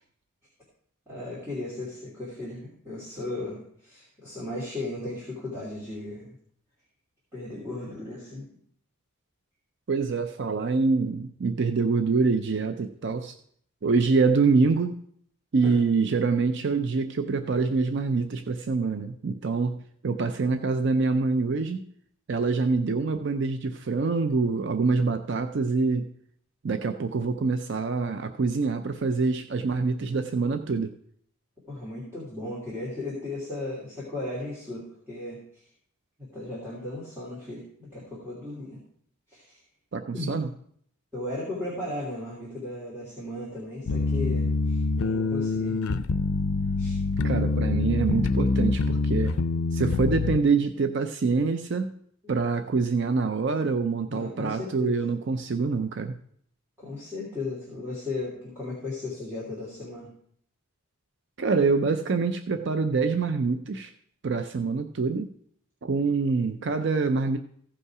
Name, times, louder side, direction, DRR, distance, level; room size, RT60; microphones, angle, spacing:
voice 1, 1.1-6.3 7.3-8.5 15.6-15.8 31.7-35.6 36.2-38.8 39.3-39.6 40.1-40.3 41.1-45.8 46.8-47.0 52.2-52.3 54.1-54.9 56.8-60.1, left 2 dB, 10° right, -9 dB, 2.9 m, -36 dB
voice 2, 9.9-13.3 13.8-15.0 15.5-19.8 20.0-21.9 22.3-26.1 26.6-30.9 39.9-40.5 47.2-49.3 49.7-51.9 52.3-56.1 61.4-63.9 64.2-65.3 65.8-67.4, right 4 dB, 55° right, 8 dB, 0.5 m, -25 dB
sound 1, 43.9-50.4, left 3 dB, 75° left, 0.5 m, -25 dB
15.5 x 5.5 x 4.8 m, 0.65 s
head